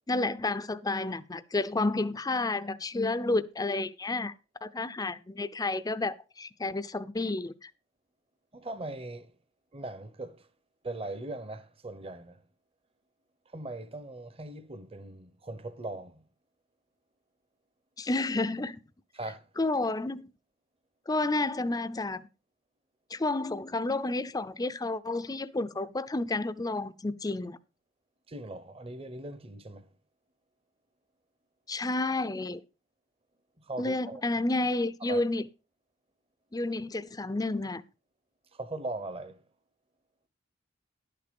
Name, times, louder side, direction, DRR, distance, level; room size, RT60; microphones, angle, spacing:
voice 1, 0.1-4.3 4.6-7.7 18.0-18.8 19.6-20.3 21.1-22.3 23.1-27.6 31.7-32.6 33.8-35.4 36.5-37.8, left 2 dB, 20° left, 0.6 m, -30 dB
voice 2, 8.5-9.3 9.7-10.5 10.8-12.4 13.5-16.2 19.2-19.4 28.3-29.9 33.7-34.2 35.1-35.2 38.5-39.4, right 2 dB, 30° right, 0.9 m, -39 dB
11.5 x 6.8 x 5.2 m
head